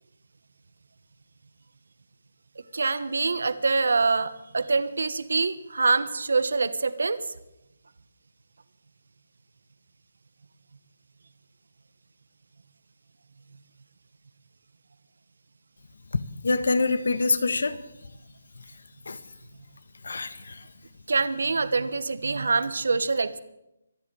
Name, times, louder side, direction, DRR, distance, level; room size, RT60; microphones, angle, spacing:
voice 1, 2.7-7.2 21.1-23.4, right 4 dB, 75° right, 1.1 m, -25 dB
voice 2, 16.1-17.8 19.1-19.2 20.0-20.6, left 3 dB, 65° left, 1.2 m, -26 dB
25.0 x 10.5 x 4.8 m
hypercardioid pair, 180°, 0 cm